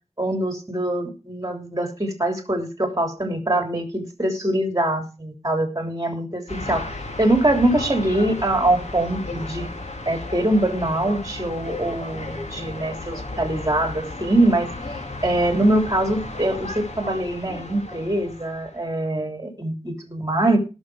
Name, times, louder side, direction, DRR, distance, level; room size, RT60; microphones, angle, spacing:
voice 1, 0.2-9.7 10.0-20.6, right 1 dB, 30° right, 5 dB, 3.1 m, -23 dB
sound 1, 6.5-18.9, left 2 dB, 80° left, 2.5 m, -34 dB
18.0 x 6.4 x 4.8 m, 0.32 s
wide cardioid pair, 50°, 12 cm